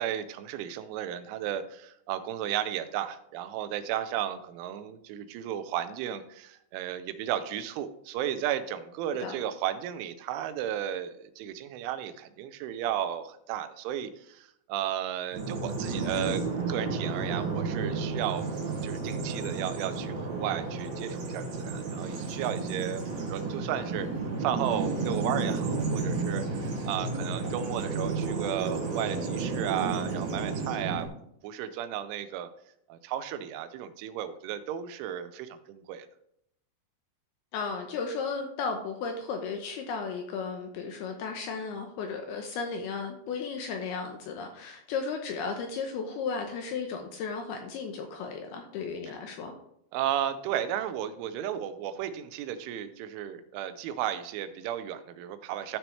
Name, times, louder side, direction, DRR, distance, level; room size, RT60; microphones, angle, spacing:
voice 1, 0.0-16.4 16.7-18.5 18.8-24.1 24.4-32.5 32.9-36.1 49.9-55.8, right 10 dB, 90° right, 11 dB, 3.2 m, -34 dB
Bird vocalization bird call bird song, 15.3-31.1, right 4 dB, 60° right, 3.1 m, -32 dB
voice 2, 37.5-49.5, left 5 dB, 75° left, 4 dB, 2.4 m, -34 dB
13.5 x 6.0 x 3.2 m, 0.74 s
omnidirectional pair, 5.4 m